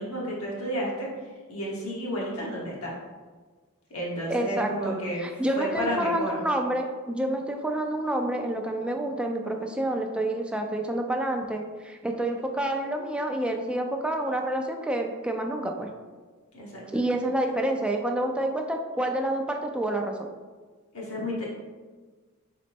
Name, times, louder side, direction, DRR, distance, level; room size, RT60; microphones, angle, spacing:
voice 1, 0.0-2.9 3.9-5.2 5.5-6.4 16.5-17.0 20.9-21.5, equal, 75° left, -5 dB, 1.3 m, -32 dB
voice 2, 4.3-4.9 5.2-15.9 16.9-20.2, right 1 dB, 5° right, 2 dB, 0.3 m, -28 dB
3.9 x 3.1 x 3.4 m, 1.4 s
head